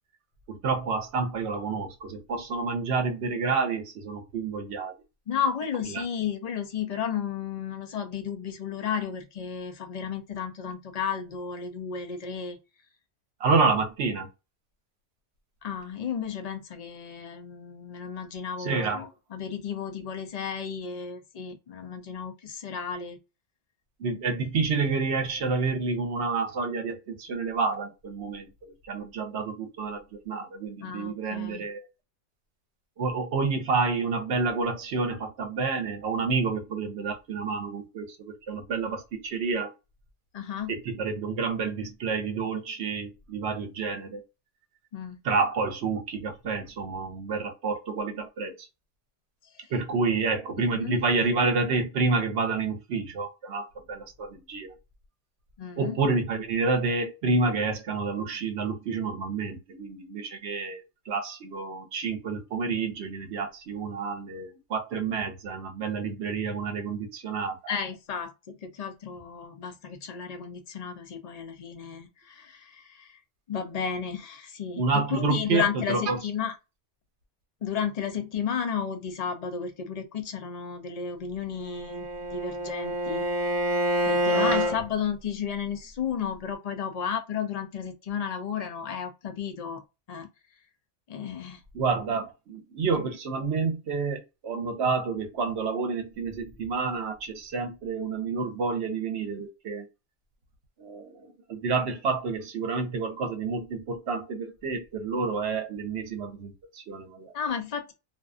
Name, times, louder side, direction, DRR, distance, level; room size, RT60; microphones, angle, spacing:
voice 1, 0.5-4.9 5.9-6.0 13.4-14.3 18.6-19.0 24.0-31.9 33.0-39.7 40.7-44.2 45.2-48.7 49.7-54.8 55.8-67.7 74.8-76.2 84.3-84.8 91.7-99.9 100.8-107.3, right 4 dB, 65° right, 0.9 m, -29 dB
voice 2, 5.3-12.6 15.6-23.2 30.8-31.7 40.3-40.8 44.9-45.2 50.7-51.0 55.6-56.0 67.7-73.2 73.5-76.5 77.6-83.3 84.0-89.8 90.1-90.3 91.1-91.6 107.3-107.9, left 7 dB, 65° left, 0.3 m, -33 dB
Bowed string instrument, 81.6-84.8, equal, 40° right, 1.1 m, -27 dB
2.5 x 2.4 x 2.3 m
omnidirectional pair, 1.2 m